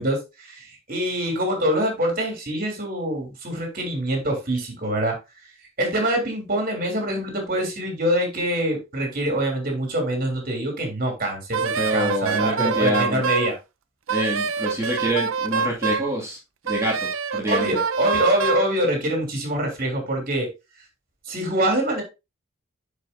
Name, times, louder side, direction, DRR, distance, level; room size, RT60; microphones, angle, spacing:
voice 1, 0.0-5.2 5.8-13.5 17.4-20.5 21.3-22.0, right 1 dB, 45° right, 2 dB, 3.1 m, -25 dB
Wind instrument woodwind instrument, 11.5-13.5 14.1-16.1 16.7-18.7, right 5 dB, 75° right, 0.7 m, -26 dB
voice 2, 11.7-13.3 14.1-16.4 16.6-17.8, equal, 15° right, -3 dB, 2.4 m, -26 dB
10.0 x 5.3 x 2.7 m, 0.25 s
head